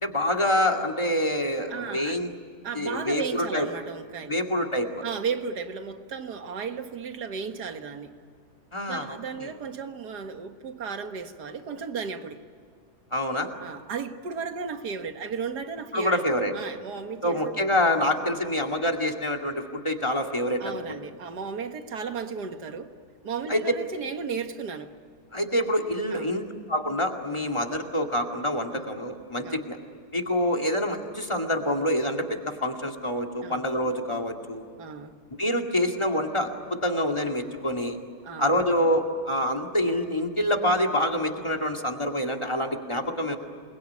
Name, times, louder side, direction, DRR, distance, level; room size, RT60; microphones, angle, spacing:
voice 1, 0.0-2.3 2.7-3.7 4.3-5.0 8.7-9.5 13.1-13.5 15.9-16.5 17.2-21.0 23.5-23.6 25.3-29.8 30.1-34.6 35.4-38.0 38.4-43.4, left 1 dB, 20° left, 7 dB, 2.3 m, -26 dB
voice 2, 1.7-2.2 2.6-4.4 5.0-8.1 8.9-12.4 13.6-17.7 20.6-22.9 23.2-24.9 26.1-26.3 27.4-27.6 28.7-28.8 29.4-29.7 33.4-33.7 34.8-35.2 38.2-38.7 41.4-41.5, right 5 dB, 80° right, 7 dB, 2.1 m, -35 dB
28.0 x 21.5 x 9.8 m, 2.1 s
omnidirectional pair, 1.7 m